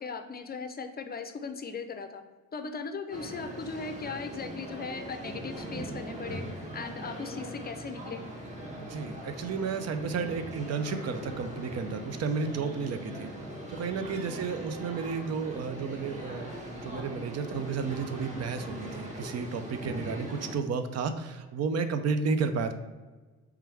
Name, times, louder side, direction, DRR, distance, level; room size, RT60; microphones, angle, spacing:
voice 1, 0.0-2.2 2.5-6.5 6.7-8.2 14.3-14.6, left 4 dB, 30° left, 8 dB, 0.5 m, -38 dB
sound 1, 3.1-20.6, equal, 25° right, 1.1 m, -40 dB
voice 2, 8.8-13.3 13.7-22.7, right 5 dB, 55° right, 9 dB, 0.5 m, -32 dB
3.4 x 3.3 x 4.6 m, 1.3 s
cardioid pair, 90°, 30 cm